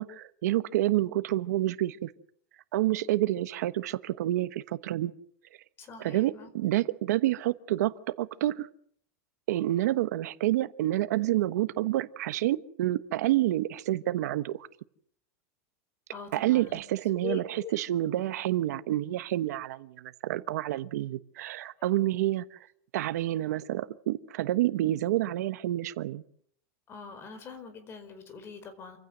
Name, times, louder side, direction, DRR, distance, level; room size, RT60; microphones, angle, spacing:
voice 1, 0.0-2.1 2.7-5.1 6.0-8.7 9.5-14.6 16.3-17.4 17.7-22.6 22.9-26.2, right 14 dB, 85° right, 13 dB, 1.2 m, -28 dB
voice 2, 5.8-6.5 16.1-16.8 17.2-17.8 21.6-21.9 26.9-29.0, left 6 dB, 25° left, 9 dB, 4.8 m, -42 dB
28.0 x 16.0 x 7.9 m, 0.64 s
supercardioid pair, 155°, 9 cm